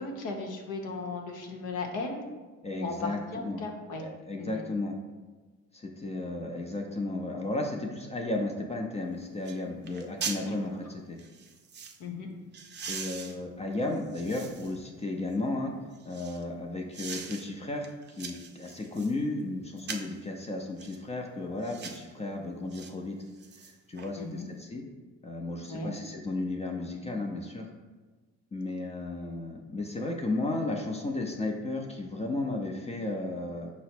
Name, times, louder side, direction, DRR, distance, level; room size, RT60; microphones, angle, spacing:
voice 1, 0.0-2.2 2.7-4.0 4.3-4.6 10.4-10.6 12.0-12.3 24.2-24.5 25.7-26.0, left 3 dB, 85° left, 1 dB, 0.7 m, -36 dB
voice 2, 2.6-3.6 4.3-5.0 5.7-11.2 12.9-15.7 16.1-23.2 23.6-24.8 25.2-27.7 28.5-33.7, left 2 dB, 20° left, 1 dB, 0.4 m, -34 dB
sound 1, 8.9-9.0 9.4-9.6 9.9-10.4 11.2-12.0 12.5-14.8 15.3-16.4 16.9-17.4 17.8-19.2 19.8-20.2 20.8-21.0 21.6-22.1 22.7-22.9 23.3-24.1 24.4-24.5, right 6 dB, 35° right, 0.5 m, -41 dB
5.4 x 2.0 x 4.3 m, 1.3 s
cardioid pair, 90°, 30 cm